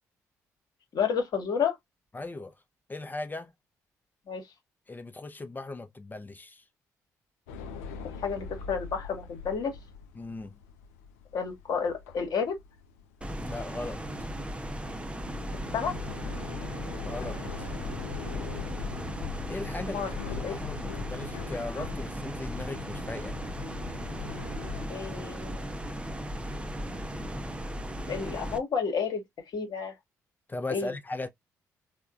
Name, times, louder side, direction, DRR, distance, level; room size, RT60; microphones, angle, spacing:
voice 1, 0.9-1.8 4.3-4.4 8.2-9.7 11.3-12.5 15.7-15.9 19.8-20.1 20.4-20.6 24.9-25.6 28.1-29.2 29.5-29.9 30.7-30.9, left 6 dB, 55° left, 1.1 m, -30 dB
voice 2, 2.1-2.5 2.9-3.5 4.9-6.6 10.2-10.6 13.4-14.0 17.0-17.7 19.5-20.1 20.4-23.4 30.5-31.3, left 2 dB, 20° left, 0.6 m, -38 dB
sound 1, 7.5-24.9, left 6 dB, 80° left, 0.4 m, -42 dB
sound 2, 13.2-28.6, equal, 15° right, 0.6 m, -37 dB
3.5 x 2.2 x 2.3 m
hypercardioid pair, 45°, 8 cm